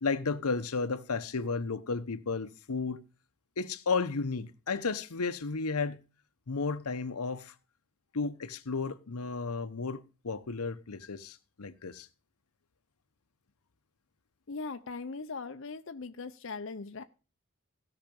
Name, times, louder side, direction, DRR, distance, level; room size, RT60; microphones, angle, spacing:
voice 1, 0.0-3.0 3.6-6.0 6.5-7.5 8.1-12.1, left 4 dB, 85° left, 0.9 m, -33 dB
voice 2, 14.5-17.0, left 4 dB, 55° left, 0.6 m, -40 dB
16.5 x 5.9 x 5.2 m
head